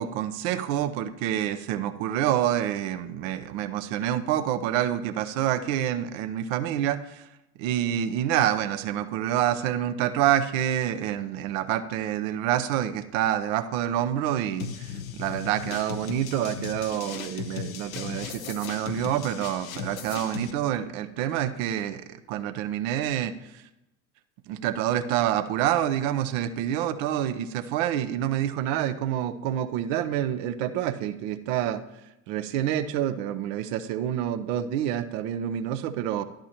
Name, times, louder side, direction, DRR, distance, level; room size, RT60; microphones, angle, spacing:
voice 1, 0.0-7.3 7.6-23.6 24.5-31.8 32.3-36.2, right 11 dB, 65° right, 11 dB, 0.9 m, -27 dB
sound 1, 14.6-20.5, left 8 dB, 85° left, 0.9 m, -37 dB
11.5 x 11.5 x 3.0 m, 0.93 s
hypercardioid pair, 60°, 41 cm